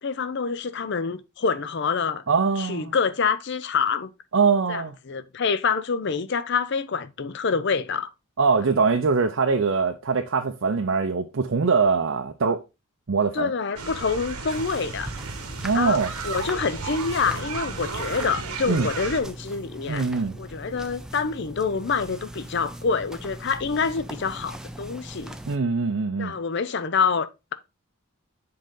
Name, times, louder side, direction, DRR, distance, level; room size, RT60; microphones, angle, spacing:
voice 1, 0.0-2.2 2.6-4.1 4.7-8.1 13.3-15.1 15.7-20.0 20.4-25.4 26.2-27.5, left 5 dB, 50° left, 0.5 m, -26 dB
voice 2, 2.3-2.9 4.3-5.0 8.4-12.6 13.1-13.5 15.6-16.1 18.7-18.9 19.9-20.4 25.5-26.4, right 5 dB, 60° right, 0.5 m, -22 dB
sound 1, 13.8-19.2, right 4 dB, 90° right, 1.1 m, -34 dB
sound 2, 14.5-25.6, right 1 dB, 5° right, 0.4 m, -40 dB
7.7 x 3.8 x 3.7 m
head